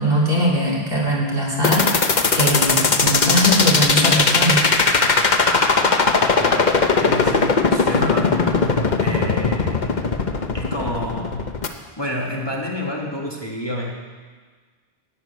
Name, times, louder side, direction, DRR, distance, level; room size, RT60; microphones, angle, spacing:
voice 1, 0.0-2.1 2.3-4.7 7.7-7.8, equal, 60° right, -3 dB, 2.9 m, -20 dB
sound 1, 1.6-11.7, left 4 dB, 45° left, 1.0 m, -18 dB
voice 2, 6.4-7.6 7.8-8.7 9.0-10.0 10.5-11.5 12.0-13.9, equal, 25° left, -2 dB, 1.7 m, -29 dB
11.5 x 8.0 x 9.3 m, 1.5 s
omnidirectional pair, 1.1 m